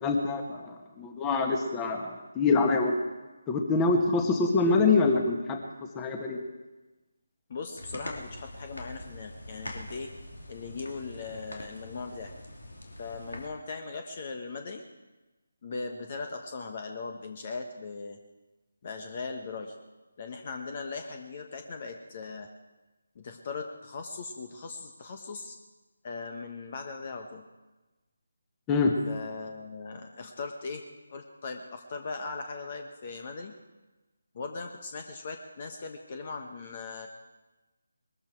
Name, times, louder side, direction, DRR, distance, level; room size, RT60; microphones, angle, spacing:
voice 1, 0.0-3.0 3.5-5.6 5.9-6.4 28.7-28.9, left 3 dB, 15° left, 3 dB, 1.7 m, -25 dB
voice 2, 7.5-10.1 10.5-12.3 13.0-14.8 15.6-18.2 18.8-19.7 20.2-22.5 23.1-25.5 26.0-27.4 29.1-30.8 31.1-33.5 34.3-37.1, left 4 dB, 40° left, 5 dB, 1.3 m, -39 dB
sound 1, 7.8-13.5, left 1 dB, 85° left, 3.1 m, -43 dB
21.0 x 14.0 x 4.7 m, 1.1 s
figure-of-eight pair, 155°, 0 cm